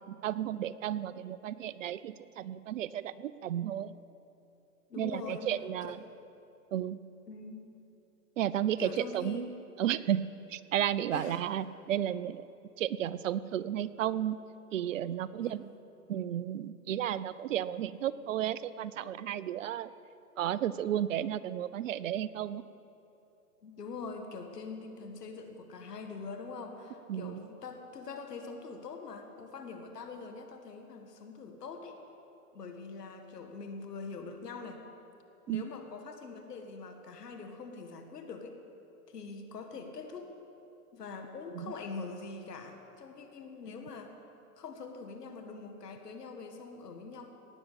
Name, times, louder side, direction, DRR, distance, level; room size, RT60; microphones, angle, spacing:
voice 1, 0.1-4.0 5.0-6.0 6.7-7.0 8.4-9.5 9.8-10.2 10.5-12.4 12.8-14.4 14.7-15.6 16.1-19.9 20.4-22.6 27.1-27.4 35.5-35.6 41.5-41.7, right 11 dB, 55° right, 16 dB, 0.5 m, -33 dB
voice 2, 4.9-5.5 5.9-6.0 7.3-7.7 8.8-9.5 11.1-11.4 15.4-15.8 23.6-32.0 32.5-34.8 35.5-38.6 39.1-40.3 40.9-44.2 44.6-47.3, left 4 dB, 80° left, 5 dB, 2.0 m, -43 dB
18.0 x 7.1 x 8.3 m, 2.9 s
hypercardioid pair, 140°, 47 cm